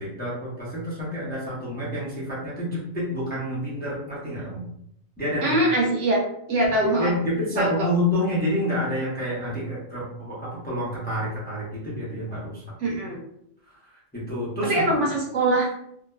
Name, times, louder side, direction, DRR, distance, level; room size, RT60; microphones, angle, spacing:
voice 1, 0.0-4.6 5.2-5.6 6.8-13.0 14.1-14.7, equal, 10° left, -8 dB, 0.6 m, -28 dB
voice 2, 5.4-6.2 6.5-7.1 7.6-7.9 12.8-13.2 14.6-15.7, right 1 dB, 65° right, -2 dB, 1.0 m, -23 dB
2.6 x 2.3 x 2.3 m, 0.73 s
omnidirectional pair, 1.4 m